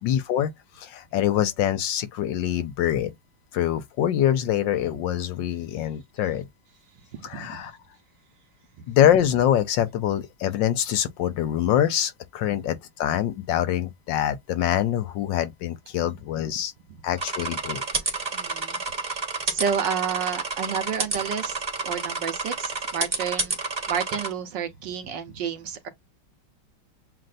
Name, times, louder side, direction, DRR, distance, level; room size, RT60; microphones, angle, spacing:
voice 1, 0.0-0.5 0.8-3.1 3.5-6.5 7.2-7.7 8.9-16.7 17.0-17.8, left 11 dB, 70° left, 1.2 m, -24 dB
voice 2, 7.1-7.6 8.8-8.9 18.3-23.5 23.9-25.9, right 7 dB, 65° right, 1.5 m, -31 dB
sound 1, 17.2-24.3, right 3 dB, 25° right, 1.1 m, -30 dB
7.6 x 2.5 x 2.5 m
omnidirectional pair, 2.2 m